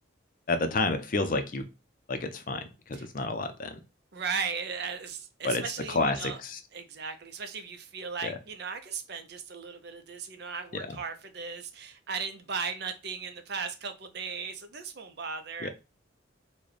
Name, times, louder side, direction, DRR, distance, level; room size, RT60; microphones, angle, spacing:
voice 1, 0.5-1.6 2.1-3.8 5.4-5.6 5.9-6.6 8.2-8.3 15.6-15.7, left 3 dB, 45° left, 8 dB, 0.5 m, -30 dB
voice 2, 4.1-6.4 6.7-15.7, right 5 dB, 55° right, 8 dB, 0.6 m, -37 dB
4.0 x 2.2 x 3.2 m, 0.29 s
head